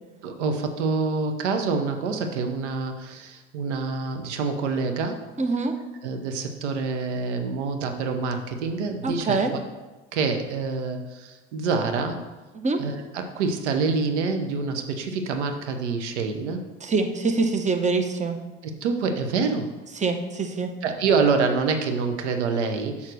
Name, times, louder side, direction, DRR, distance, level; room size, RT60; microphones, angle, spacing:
voice 1, 0.2-5.2 6.0-9.5 10.1-12.2 12.8-16.6 18.6-19.7 20.8-23.1, right 4 dB, 70° right, 6 dB, 0.9 m, -26 dB
voice 2, 5.4-5.7 9.0-9.5 12.5-12.8 16.8-18.4 20.0-20.7, right 4 dB, 20° right, 6 dB, 1.0 m, -24 dB
6.5 x 5.5 x 6.3 m, 1.2 s
figure-of-eight pair, 65°, 36 cm